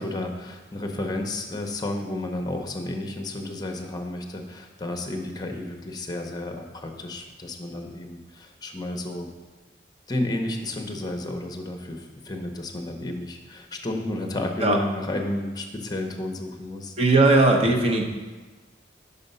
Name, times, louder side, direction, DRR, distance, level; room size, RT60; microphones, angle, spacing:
voice 1, 0.0-9.3 10.1-16.9, left 1 dB, 20° left, 4 dB, 0.7 m, -32 dB
voice 2, 17.0-18.0, right 2 dB, 35° right, 1 dB, 0.8 m, -18 dB
5.5 x 5.0 x 5.4 m, 1.3 s
head